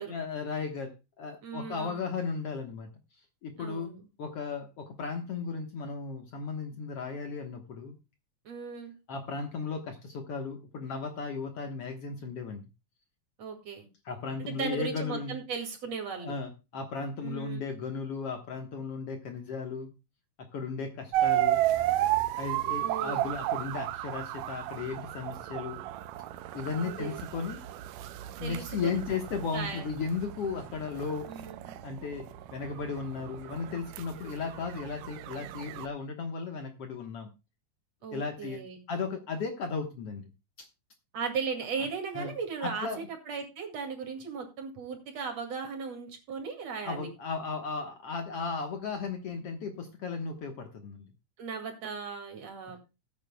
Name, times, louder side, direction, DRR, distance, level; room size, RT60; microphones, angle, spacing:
voice 1, 0.1-2.9 3.4-3.9 4.2-8.0 9.1-12.6 14.1-15.4 16.2-19.9 20.4-21.6 22.4-25.8 26.5-27.6 28.4-31.3 31.8-32.2 32.5-37.3 38.1-38.6 38.9-40.3 40.6-40.7 42.2-42.3 42.6-43.1 46.8-51.1, left 5 dB, 60° left, 5 dB, 1.9 m, -35 dB
voice 2, 1.4-2.0 3.6-4.1 8.4-8.9 13.4-13.9 14.4-16.3 17.2-17.6 22.8-23.3 26.8-27.2 28.4-29.0 29.5-29.8 31.3-31.7 38.0-38.8 41.1-47.1 51.4-52.8, right 5 dB, 55° right, 4 dB, 3.2 m, -37 dB
sound 1, 21.1-35.9, right 14 dB, 90° right, 2.3 m, -33 dB
19.0 x 9.1 x 2.2 m, 0.27 s
omnidirectional pair, 3.7 m